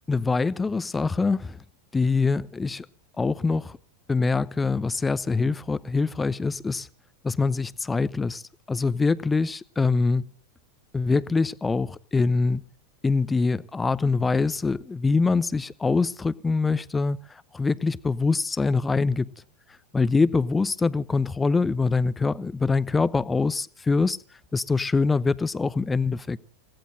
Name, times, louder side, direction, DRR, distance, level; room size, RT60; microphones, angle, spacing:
voice 1, 0.1-1.6 1.9-2.9 3.2-3.8 4.1-6.9 7.2-8.4 8.7-10.3 10.9-12.6 13.0-19.3 19.9-24.2 24.5-26.4, left 4 dB, 10° left, 0.7 m, -24 dB
30.0 x 17.0 x 2.7 m
figure-of-eight pair, 90°, 0 cm